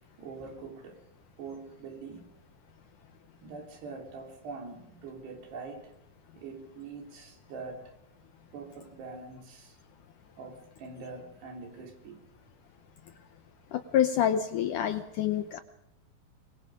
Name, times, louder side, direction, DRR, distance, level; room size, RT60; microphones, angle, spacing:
voice 1, 0.2-1.1 1.4-2.3 3.4-5.9 6.3-7.9 8.5-9.8 10.4-12.2, right 4 dB, 85° right, 5.8 m, -44 dB
voice 2, 13.7-15.6, left 10 dB, 75° left, 1.9 m, -27 dB
23.5 x 23.0 x 5.1 m
omnidirectional pair, 4.7 m